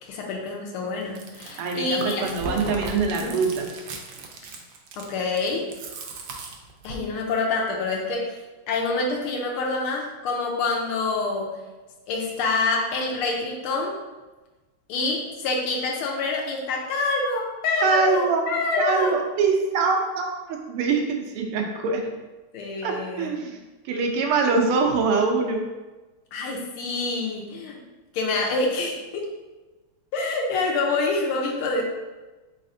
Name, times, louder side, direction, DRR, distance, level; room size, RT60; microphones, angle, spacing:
voice 1, 0.0-2.2 3.2-3.4 5.0-5.7 6.8-8.3 8.7-11.5 12.1-14.0 14.9-19.1 22.5-23.3 26.3-27.8 28.1-29.3 30.1-31.8, left 3 dB, 85° left, -1 dB, 1.6 m, -26 dB
Chewing mastication, 1.0-7.1, right 3 dB, 70° right, 1.1 m, -37 dB
voice 2, 1.6-3.7 17.8-18.4 18.8-22.1 22.8-23.6 23.8-25.7, right 4 dB, 90° right, 2 dB, 1.6 m, -24 dB
4.2 x 4.1 x 2.6 m, 1.2 s
omnidirectional pair, 2.4 m